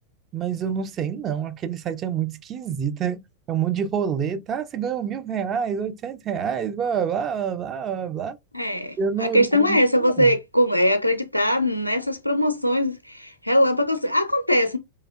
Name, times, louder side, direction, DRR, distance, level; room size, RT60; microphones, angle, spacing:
voice 1, 0.3-3.2 3.5-8.4 9.0-10.3, right 7 dB, 30° right, 0.5 m, -27 dB
voice 2, 8.5-14.8, equal, 90° left, 0.5 m, -21 dB
3.2 x 2.7 x 2.3 m
figure-of-eight pair, 90°, 0 cm